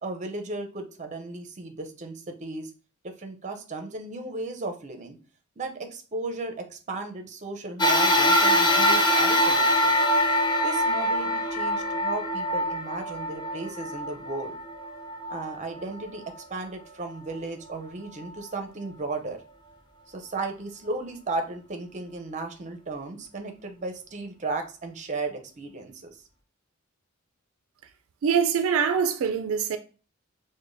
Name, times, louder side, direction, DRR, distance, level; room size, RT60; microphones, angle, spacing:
voice 1, 0.0-2.7 3.0-5.2 5.6-10.0 10.6-14.6 15.3-16.2 16.5-19.4 20.1-26.1, right 3 dB, 35° right, 0.6 m, -35 dB
sound 1, 7.8-16.4 17.0-17.1 18.2-18.3, left 1 dB, 20° left, 0.6 m, -24 dB
voice 2, 28.2-29.8, right 7 dB, 80° right, 0.3 m, -24 dB
4.9 x 2.1 x 2.5 m
head